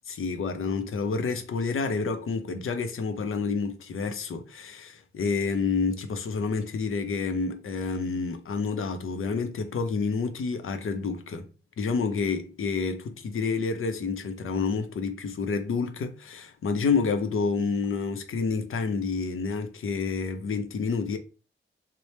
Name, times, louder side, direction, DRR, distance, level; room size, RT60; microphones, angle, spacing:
voice 1, 0.1-11.5 11.8-21.2, left 4 dB, 85° left, 0.5 m, -29 dB
3.2 x 2.0 x 4.1 m
wide cardioid pair, 175°, 21 cm